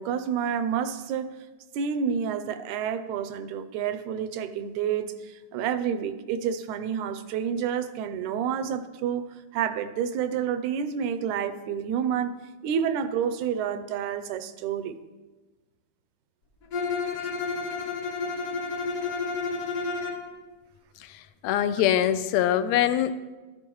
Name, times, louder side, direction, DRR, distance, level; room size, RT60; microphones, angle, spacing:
voice 1, 0.0-1.4 1.7-12.3 12.6-15.0, right 8 dB, 85° right, 11 dB, 2.0 m, -29 dB
Bowed string instrument, 16.7-20.3, left 4 dB, 60° left, 2.0 m, -30 dB
voice 2, 21.4-23.1, left 11 dB, 80° left, 12 dB, 1.8 m, -23 dB
13.0 x 12.5 x 3.1 m, 1.2 s
omnidirectional pair, 3.3 m